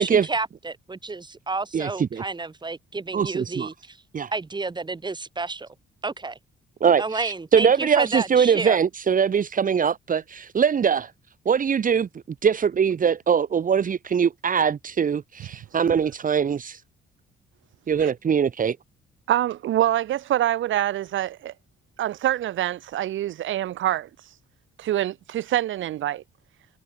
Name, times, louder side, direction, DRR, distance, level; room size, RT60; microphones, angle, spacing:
voice 1, 0.0-4.0 4.3-5.7 6.0-6.4 7.0-8.8, right 3 dB, 20° right, 3.4 m, -30 dB
voice 2, 1.7-2.2 3.1-3.7 4.1-4.3 6.8-11.1 11.4-12.1 12.4-16.8 17.9-18.8, right 7 dB, 45° right, 1.5 m, -22 dB
voice 3, 19.3-21.5 22.0-24.1 24.8-26.2, right 13 dB, 75° right, 1.9 m, -25 dB
cardioid pair, 90°, 20 cm